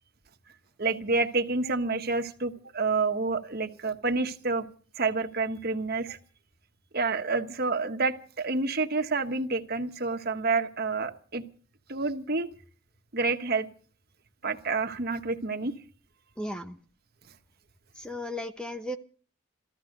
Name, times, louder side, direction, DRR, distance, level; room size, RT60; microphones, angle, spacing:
voice 1, 0.8-4.7 5.0-6.2 6.9-11.4 11.9-12.5 13.1-13.7 14.4-15.7, right 3 dB, 50° right, 7 dB, 1.3 m, -28 dB
voice 2, 16.4-16.8 17.9-19.0, left 1 dB, 5° left, 8 dB, 0.9 m, -35 dB
15.0 x 14.0 x 6.6 m, 0.41 s
head